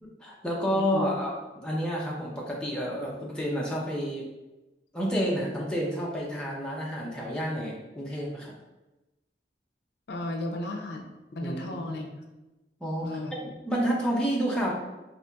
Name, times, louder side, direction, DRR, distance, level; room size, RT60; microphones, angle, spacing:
voice 1, 0.0-4.3 4.9-8.5 11.4-12.1 12.8-14.7, equal, 5° left, -4 dB, 0.5 m, -30 dB
voice 2, 10.1-12.0 13.0-13.4, left 1 dB, 65° left, 2 dB, 0.5 m, -34 dB
3.9 x 2.8 x 2.3 m, 1.0 s
head